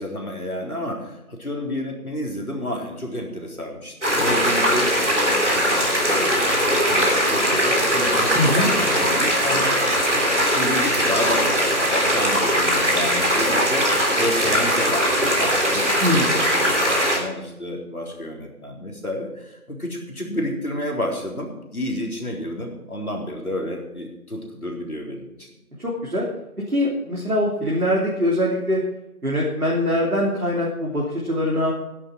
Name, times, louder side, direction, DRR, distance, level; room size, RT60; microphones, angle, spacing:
voice 1, 0.0-6.4 6.8-9.7 10.4-16.0 16.3-25.5, left 1 dB, 75° left, 0 dB, 3.9 m, -30 dB
sound 1, 4.0-17.2, equal, 50° right, 3.3 m, -20 dB
voice 2, 8.3-8.7 16.0-16.3 25.8-26.2 26.7-28.8 29.2-31.7, left 1 dB, 75° right, -4 dB, 3.2 m, -22 dB
12.5 x 11.0 x 4.6 m, 0.92 s
figure-of-eight pair, 175°, 44 cm